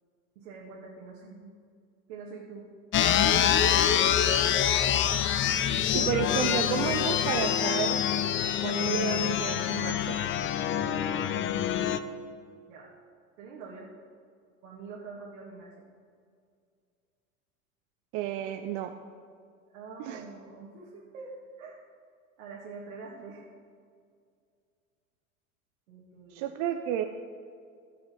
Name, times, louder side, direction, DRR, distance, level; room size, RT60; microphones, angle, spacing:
voice 1, 0.4-1.5 2.1-2.7 11.1-12.0 12.7-12.9 13.4-13.9 14.6-15.9 19.7-21.3 21.6-21.8 22.4-23.5 25.9-26.5, right 4 dB, 70° right, -5 dB, 2.3 m, -45 dB
sound 1, 2.9-12.0, left 10 dB, 30° left, 0.6 m, -26 dB
voice 2, 5.9-8.1 8.6-10.2 18.1-18.9 20.0-20.2 26.3-27.0, right 10 dB, 55° right, 6 dB, 0.8 m, -31 dB
17.0 x 6.5 x 4.6 m, 2.2 s
hypercardioid pair, 85°, 41 cm